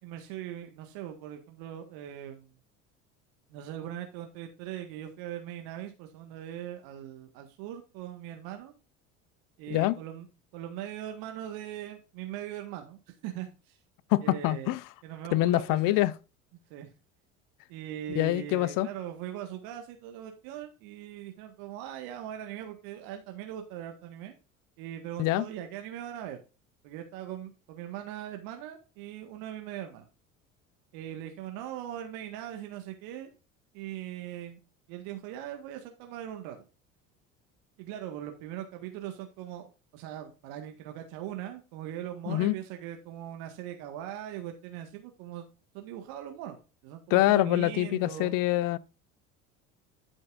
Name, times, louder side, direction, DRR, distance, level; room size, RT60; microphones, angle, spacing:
voice 1, 0.0-2.6 3.5-8.7 9.6-10.3 10.5-13.8 14.2-14.7 15.0-16.0 16.7-16.9 17.7-24.3 24.8-26.4 26.8-30.1 30.9-33.3 33.7-34.6 34.9-36.6 37.8-45.4 45.7-46.6 46.8-48.4, right 11 dB, 65° right, 1.7 m, -40 dB
voice 2, 14.1-14.8 15.3-16.1 18.1-18.9 25.2-25.4 42.3-42.6 47.1-48.8, left 17 dB, 55° left, 0.8 m, -25 dB
12.0 x 6.3 x 2.6 m
hypercardioid pair, 70°, 39 cm